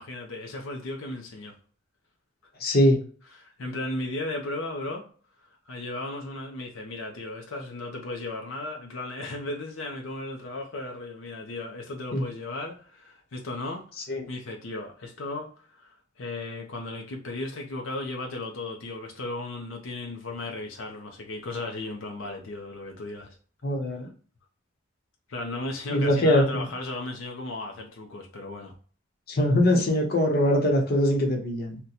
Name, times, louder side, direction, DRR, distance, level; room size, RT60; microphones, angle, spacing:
voice 1, 0.0-1.6 3.3-5.0 5.4-13.8 14.3-23.3 23.9-24.0 25.3-28.7, left 2 dB, 85° left, 0.6 m, -35 dB
voice 2, 2.6-3.0 12.1-12.2 14.1-14.3 23.6-24.1 25.9-26.6 29.3-31.8, left 1 dB, 50° left, 0.8 m, -22 dB
2.8 x 2.2 x 3.8 m
head